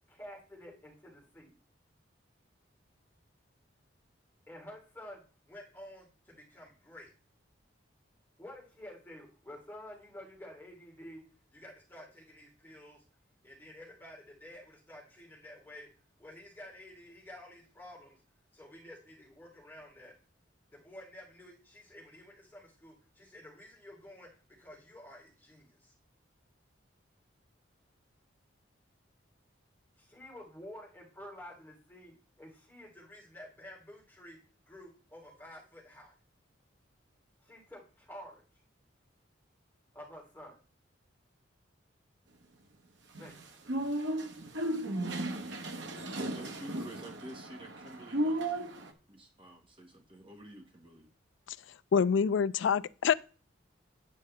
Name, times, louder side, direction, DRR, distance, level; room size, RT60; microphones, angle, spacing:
voice 1, 0.1-1.5 4.5-7.1 8.4-11.2 11.5-13.0 13.4-15.9 16.2-18.2 18.5-20.1 20.7-24.3 24.6-25.9 30.0-34.4 34.7-36.1 37.4-38.4 39.9-40.6 43.2-43.3, left 1 dB, 10° left, 2.9 m, -50 dB
sound 1, 43.1-48.9, right 1 dB, 70° right, 1.1 m, -35 dB
voice 2, 46.3-48.7 49.1-51.1, right 1 dB, 25° right, 1.4 m, -50 dB
voice 3, 51.9-53.1, left 6 dB, 70° left, 0.3 m, -26 dB
9.0 x 8.4 x 3.3 m
head